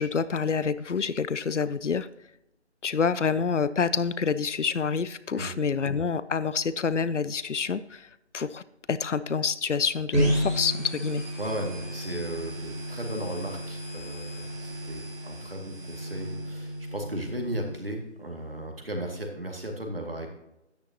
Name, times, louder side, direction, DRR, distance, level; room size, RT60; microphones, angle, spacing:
voice 1, 0.0-2.1 2.8-8.6 8.9-11.2, left 5 dB, 80° left, 16 dB, 0.6 m, -27 dB
sound 1, 10.1-17.7, equal, 10° right, 2.7 m, -32 dB
voice 2, 11.4-20.3, right 1 dB, 50° right, 2 dB, 2.2 m, -35 dB
12.0 x 10.0 x 2.9 m, 0.87 s
figure-of-eight pair, 170°, 36 cm